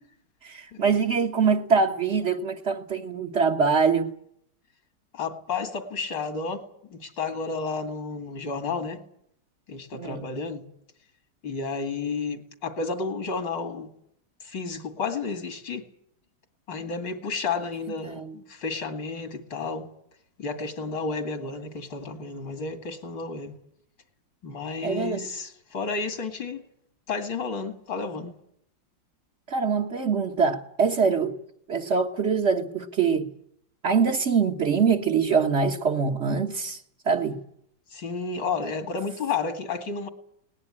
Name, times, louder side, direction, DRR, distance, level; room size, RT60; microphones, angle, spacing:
voice 1, 0.4-4.1 10.0-10.3 18.0-18.3 24.8-25.3 29.5-31.4 31.7-33.3 33.8-37.4, right 5 dB, 40° right, 1.6 m, -24 dB
voice 2, 5.1-9.0 9.7-10.7 11.4-13.9 14.4-15.8 16.7-19.9 20.4-23.5 24.4-26.6 27.1-28.3 37.9-40.1, left 4 dB, 75° left, 3.0 m, -31 dB
21.0 x 19.0 x 9.8 m
omnidirectional pair, 2.0 m